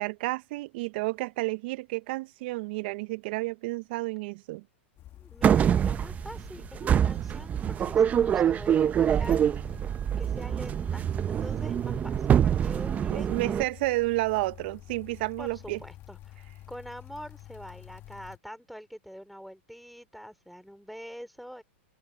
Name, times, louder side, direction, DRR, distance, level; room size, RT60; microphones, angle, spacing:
voice 1, 0.0-4.6 13.1-15.8, right 22 dB, 55° right, 0.7 m, -31 dB
sound 1, 5.0-18.4, left 14 dB, 35° left, 1.6 m, -49 dB
voice 2, 5.2-9.4 10.2-13.6 15.4-21.6, equal, ahead, 3.5 m, -45 dB
sound 2, 5.4-13.6, right 9 dB, 20° right, 0.7 m, -25 dB
open air
hypercardioid pair, 120°, 7 cm